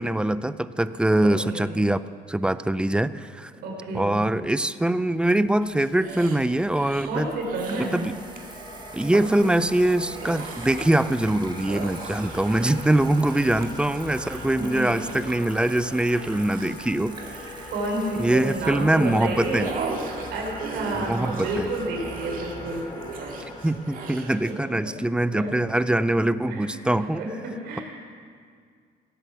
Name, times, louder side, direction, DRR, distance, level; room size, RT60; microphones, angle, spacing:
voice 1, 0.0-2.0 2.3-3.5 3.9-7.3 7.8-8.2 8.9-17.4 18.2-19.7 20.9-21.7 23.6-27.2, right 1 dB, 5° right, 15 dB, 0.4 m, -23 dB
voice 2, 1.2-1.7 3.6-4.1 7.0-7.9 12.5-12.9 14.5-15.0 17.7-19.7 20.3-22.9 24.2-24.5 25.3-25.5 26.5-26.7 27.1-27.8, right 2 dB, 75° right, -1 dB, 3.9 m, -30 dB
sound 1, 5.4-23.4, right 3 dB, 25° right, 1.6 m, -45 dB
sound 2, 5.6-7.1 7.4-7.9 8.4-8.6 9.0-9.2 9.9-11.0 11.6-18.6 19.0-24.5, right 4 dB, 55° right, 1.9 m, -38 dB
sound 3, 7.4-24.1, left 2 dB, 25° left, 1.6 m, -41 dB
16.5 x 8.1 x 6.9 m, 2.1 s
cardioid pair, 110°, 17 cm